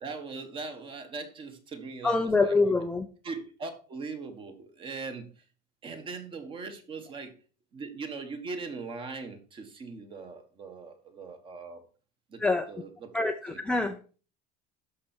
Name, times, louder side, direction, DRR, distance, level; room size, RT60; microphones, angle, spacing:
voice 1, 0.0-2.5 3.2-5.4 5.8-7.3 7.7-11.8 12.3-13.1 13.5-13.6, right 4 dB, 25° right, 7 dB, 1.5 m, -40 dB
voice 2, 2.0-3.1 12.4-12.7 13.1-14.0, left 3 dB, 5° left, 5 dB, 0.4 m, -25 dB
12.5 x 5.8 x 4.4 m, 0.38 s
cardioid pair, 170°, 19 cm